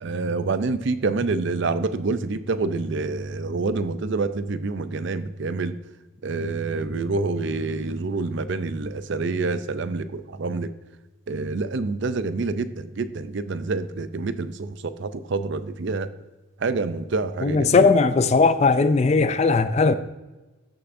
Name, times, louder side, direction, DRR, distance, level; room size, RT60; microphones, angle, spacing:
voice 1, 0.0-5.7 6.2-10.7 11.3-16.1 16.6-17.9, right 3 dB, 55° right, 0.5 m, -27 dB
voice 2, 17.4-20.0, left 4 dB, 30° left, 0.3 m, -18 dB
13.0 x 6.7 x 2.6 m
head